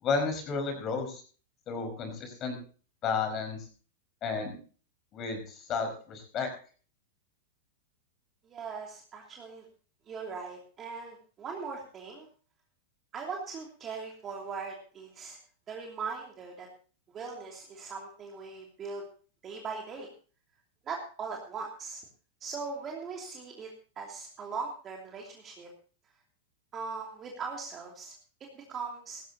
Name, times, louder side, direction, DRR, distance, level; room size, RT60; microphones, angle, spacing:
voice 1, 0.0-1.2 1.7-2.6 3.0-3.6 4.2-4.6 5.1-6.5, left 4 dB, 35° left, 5 dB, 5.0 m, -32 dB
voice 2, 8.4-9.6 10.1-12.3 13.1-15.4 15.7-16.7 17.1-19.0 19.4-20.1 20.8-22.0 22.4-23.7 24.0-25.7 26.7-28.1 28.5-29.2, right 5 dB, 25° right, 0 dB, 2.8 m, -39 dB
17.0 x 14.0 x 2.9 m, 0.39 s
hypercardioid pair, 130°, 0 cm